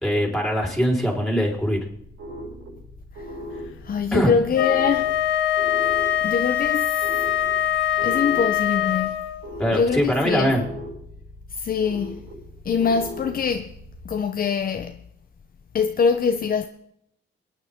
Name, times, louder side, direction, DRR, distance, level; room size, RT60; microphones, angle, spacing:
voice 1, 0.0-1.8 4.1-4.3 9.6-10.6, equal, ahead, 4.3 m, -22 dB
sound 1, 1.4-13.9, left 1 dB, 90° right, 6.6 m, -39 dB
voice 2, 3.8-5.2 6.2-7.0 8.0-9.2 9.7-10.5 11.6-12.2 12.6-13.7 14.0-15.0 15.7-16.7, left 6 dB, 45° left, 0.8 m, -23 dB
Wind instrument woodwind instrument, 4.5-9.4, left 11 dB, 80° left, 1.1 m, -23 dB
25.0 x 9.6 x 3.7 m
cardioid pair, 90°, 20 cm